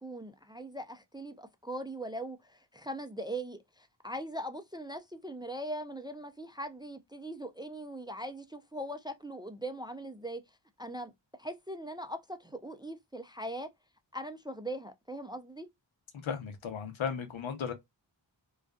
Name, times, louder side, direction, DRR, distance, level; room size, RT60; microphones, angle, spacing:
voice 1, 0.0-10.4 10.8-11.1 11.4-13.7 14.1-15.7, right 1 dB, 10° right, 0.3 m, -40 dB
voice 2, 16.2-17.7, left 7 dB, 85° left, 0.8 m, -35 dB
2.5 x 2.3 x 2.2 m
cardioid pair, 60°, 46 cm